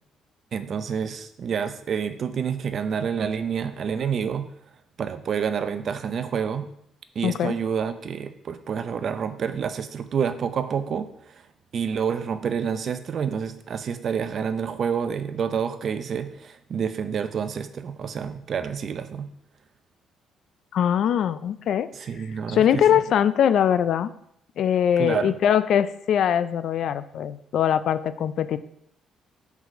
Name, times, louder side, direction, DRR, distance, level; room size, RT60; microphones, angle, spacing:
voice 1, 0.5-4.5 5.0-6.7 7.2-11.5 11.7-19.3 21.9-23.0 25.0-25.4, right 7 dB, 50° right, 11 dB, 0.5 m, -28 dB
voice 2, 7.2-7.6 20.7-21.9 22.5-24.1 24.6-28.6, left 9 dB, 65° left, 14 dB, 0.3 m, -22 dB
4.7 x 4.0 x 5.5 m, 0.72 s
cardioid pair, 105°, 0 cm